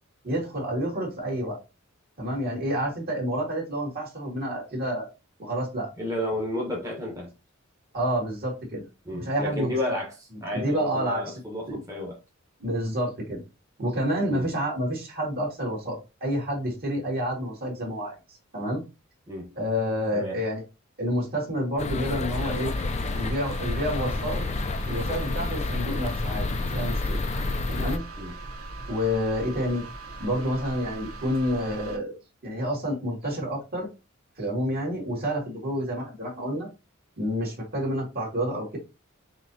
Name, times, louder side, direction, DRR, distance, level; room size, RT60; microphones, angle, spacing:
voice 1, 0.2-1.6 2.2-5.1 5.4-5.9 7.9-8.8 9.1-9.7 10.5-11.3 11.7-11.8 12.6-13.4 13.8-18.2 18.5-18.8 19.6-20.6 21.0-22.7 23.1-24.4 24.9-27.2 27.7-28.0 28.9-29.8 30.2-32.1 32.4-33.9 34.4-36.7 37.2-38.8, equal, 45° right, 2.1 m, -29 dB
voice 2, 6.0-7.3 9.0-12.2 14.3-14.5 19.3-19.5 20.1-20.4 28.2-28.3, left 1 dB, 15° right, 1.0 m, -32 dB
sound 1, 21.8-28.0, left 3 dB, 30° left, 0.3 m, -29 dB
sound 2, 22.3-32.0, right 2 dB, 80° right, 0.9 m, -39 dB
5.8 x 2.8 x 2.7 m
head